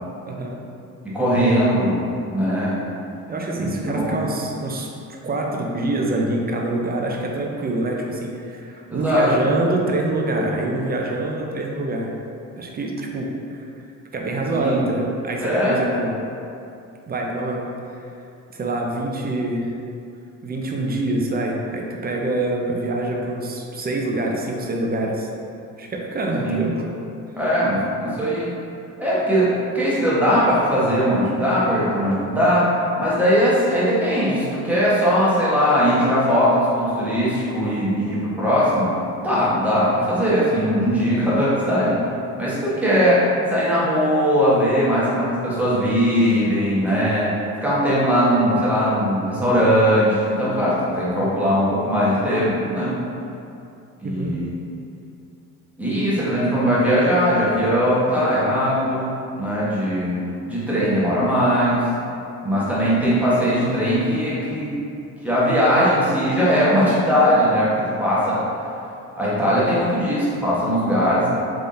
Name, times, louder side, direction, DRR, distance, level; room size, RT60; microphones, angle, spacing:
voice 1, 0.2-0.6 3.3-4.9 5.2-12.1 12.6-13.7 14.1-16.1 17.1-17.7 18.5-19.7 20.4-25.3 25.8-26.7 54.0-54.4, right 2 dB, 25° right, 0 dB, 0.5 m, -25 dB
voice 2, 1.0-2.8 3.5-4.3 8.9-9.3 14.5-14.8 15.4-15.8 26.4-26.6 27.4-28.5 29.0-32.7 33.0-38.9 39.2-41.9 42.4-43.2 43.5-47.3 47.6-52.9 54.0-54.5 55.8-60.2 60.5-61.8 62.4-64.7 65.2-68.4 69.2-71.3, equal, 5° right, -10 dB, 1.2 m, -20 dB
3.5 x 3.3 x 2.6 m, 2.6 s
cardioid pair, 85°, 36 cm